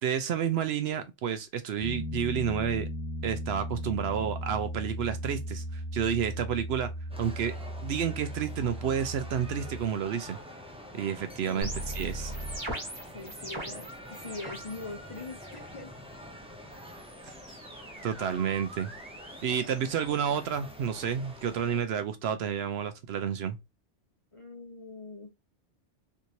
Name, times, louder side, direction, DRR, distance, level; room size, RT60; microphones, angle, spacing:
voice 1, 0.0-2.9 3.2-6.9 7.2-10.4 10.9-12.3 17.2-17.3 18.0-18.9 19.4-23.6, right 8 dB, 65° right, 0.8 m, -30 dB
Piano, 1.8-9.9, equal, 75° left, 1.1 m, -37 dB
sound 1, 7.1-21.8, equal, 10° right, 0.4 m, -47 dB
sound 2, 11.6-14.8 15.1-15.7 16.7-20.8, right 1 dB, 25° right, 1.2 m, -41 dB
voice 2, 13.1-15.9 24.3-25.3, left 3 dB, 35° left, 0.6 m, -42 dB
3.5 x 2.9 x 2.6 m
omnidirectional pair, 1.2 m